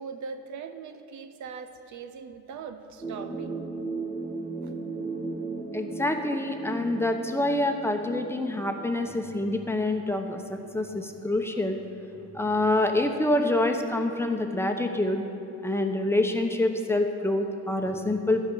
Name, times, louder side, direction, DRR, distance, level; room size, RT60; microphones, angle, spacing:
voice 1, 0.0-3.6 4.6-4.7, right 5 dB, 70° right, 9 dB, 0.7 m, -40 dB
sound 1, 3.0-9.2, right 3 dB, 20° right, 2.5 m, -36 dB
voice 2, 5.7-11.8 12.3-15.2 15.6-18.4, left 1 dB, 10° left, 4 dB, 0.9 m, -26 dB
11.0 x 5.9 x 8.4 m, 2.9 s
cardioid pair, 90°, 30 cm